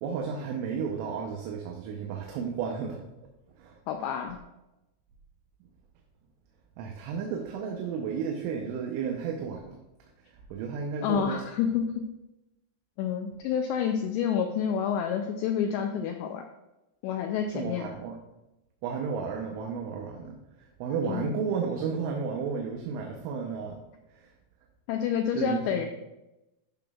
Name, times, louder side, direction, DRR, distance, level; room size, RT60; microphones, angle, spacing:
voice 1, 0.0-3.0 3.6-3.8 6.8-9.8 10.5-11.5 17.5-18.2 18.8-23.8 24.1-24.3 25.3-25.9, right 6 dB, 80° right, 1 dB, 3.2 m, -33 dB
voice 2, 3.9-4.4 11.0-12.0 13.0-16.4 17.0-17.9 21.0-21.3 24.9-25.8, left 8 dB, 90° left, 4 dB, 2.4 m, -29 dB
14.0 x 6.1 x 2.4 m, 0.95 s
omnidirectional pair, 5.6 m